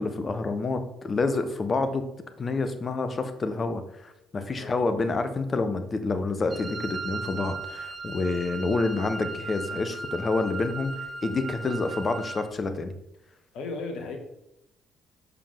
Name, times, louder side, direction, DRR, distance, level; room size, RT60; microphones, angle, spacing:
voice 1, 0.0-2.1 2.4-12.9, left 3 dB, 35° left, 9 dB, 0.7 m, -28 dB
Wind instrument woodwind instrument, 6.5-12.5, right 3 dB, 30° right, 1.0 m, -37 dB
voice 2, 13.5-14.2, left 3 dB, 55° left, 4 dB, 1.2 m, -36 dB
6.8 x 5.4 x 3.4 m, 0.87 s
figure-of-eight pair, 45°, 0 cm